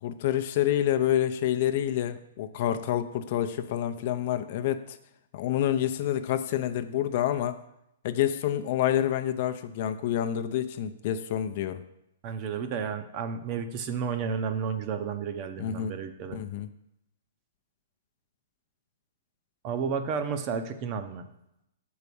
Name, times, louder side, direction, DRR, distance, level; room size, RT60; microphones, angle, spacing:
voice 1, 0.0-5.0 5.3-7.6 8.0-11.8 15.6-15.9 16.3-16.7, left 11 dB, 45° left, 10 dB, 0.5 m, -28 dB
voice 2, 12.2-16.4 19.6-21.3, right 6 dB, 30° right, 7 dB, 0.7 m, -32 dB
6.8 x 4.7 x 6.9 m, 0.82 s
hypercardioid pair, 155°, 0 cm